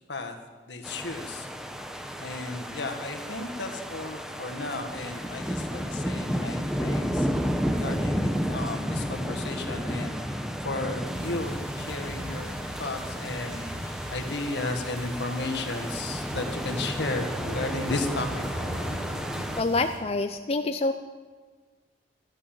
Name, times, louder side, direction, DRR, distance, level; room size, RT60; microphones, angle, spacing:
voice 1, 0.7-1.5 2.2-7.3 7.7-10.4 10.6-18.4, left 2 dB, 70° left, 5 dB, 1.8 m, -34 dB
sound 1, 0.8-19.6, equal, 5° right, 0.8 m, -32 dB
sound 2, 11.1-20.0, equal, 75° right, 4.7 m, -38 dB
voice 2, 19.6-20.9, left 3 dB, 35° left, 6 dB, 0.5 m, -26 dB
13.5 x 11.0 x 7.4 m, 1.5 s
head